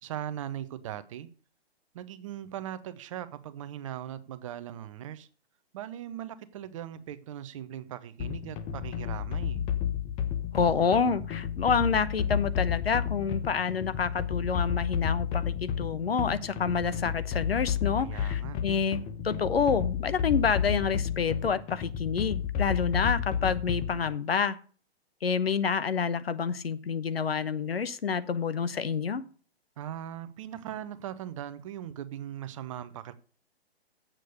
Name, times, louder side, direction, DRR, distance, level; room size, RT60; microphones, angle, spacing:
voice 1, 0.0-1.3 1.9-5.3 5.7-9.7 18.0-18.6 29.8-33.1, right 11 dB, 30° right, 0.7 m, -39 dB
sound 1, 8.2-24.1, left 8 dB, 20° left, 0.8 m, -31 dB
voice 2, 10.5-24.6 25.2-29.2, left 6 dB, 65° left, 1.0 m, -28 dB
8.2 x 7.6 x 6.6 m
figure-of-eight pair, 125°, 32 cm